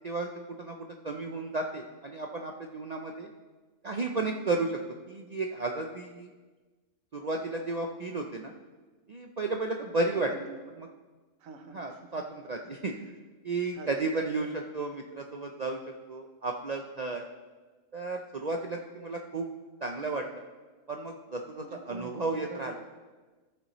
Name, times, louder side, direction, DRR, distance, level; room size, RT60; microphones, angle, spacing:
voice 1, 1.0-3.3 3.8-4.8 5.1-6.3 7.1-8.5 9.1-10.3 11.7-12.9 13.4-15.8 16.1-17.2 17.9-19.5 19.8-20.4 20.9-22.7, right 3 dB, 55° right, 2 dB, 0.4 m, -33 dB
voice 2, 10.1-10.6 11.4-12.1 12.6-13.2 13.7-14.3 21.6-22.8, right 4 dB, 75° right, 5 dB, 1.2 m, -46 dB
14.5 x 6.9 x 3.0 m, 1.3 s
omnidirectional pair, 1.4 m